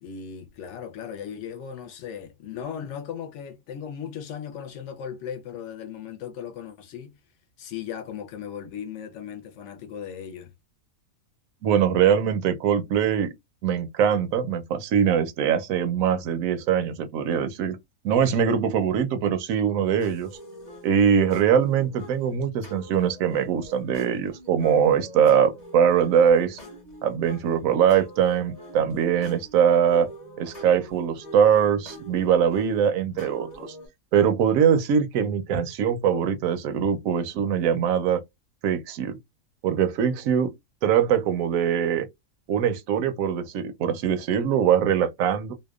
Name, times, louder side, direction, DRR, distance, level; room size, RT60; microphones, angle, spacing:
voice 1, 0.0-7.2 7.6-10.5, left 8 dB, 65° left, 0.7 m, -37 dB
voice 2, 11.6-13.3 13.6-17.8 18.0-20.3 20.8-26.6 27.0-30.1 30.4-33.5 34.1-38.2 38.6-39.2 39.6-40.5 40.8-42.1 42.5-45.5, right 8 dB, 70° right, 0.9 m, -22 dB
sound 1, 20.0-33.9, equal, 35° left, 0.8 m, -44 dB
2.7 x 2.1 x 2.3 m
omnidirectional pair, 1.6 m